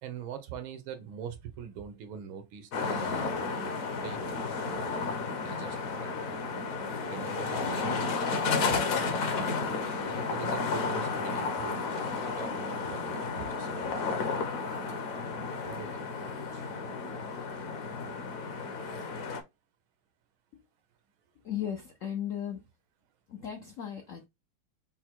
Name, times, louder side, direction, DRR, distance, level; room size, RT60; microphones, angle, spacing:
voice 1, 0.0-4.7 5.4-6.6 7.1-8.1 8.4-9.1 10.0-12.0 12.2-14.2 15.4-16.8, right 8 dB, 85° right, 1.7 m, -44 dB
sound 1, 2.7-19.4, left 4 dB, 55° left, 1.0 m, -32 dB
voice 2, 21.4-22.6 23.3-24.3, left 9 dB, 75° left, 0.7 m, -36 dB
5.6 x 2.1 x 4.4 m
omnidirectional pair, 2.2 m